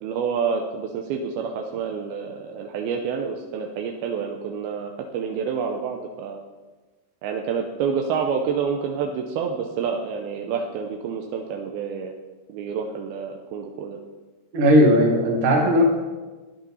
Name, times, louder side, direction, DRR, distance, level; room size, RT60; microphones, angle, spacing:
voice 1, 0.0-6.4 7.2-12.1 12.5-14.0, right 6 dB, 80° right, 2 dB, 2.4 m, -28 dB
voice 2, 14.5-15.9, equal, 55° right, 0 dB, 3.1 m, -17 dB
13.5 x 10.0 x 4.2 m, 1.3 s
omnidirectional pair, 5.0 m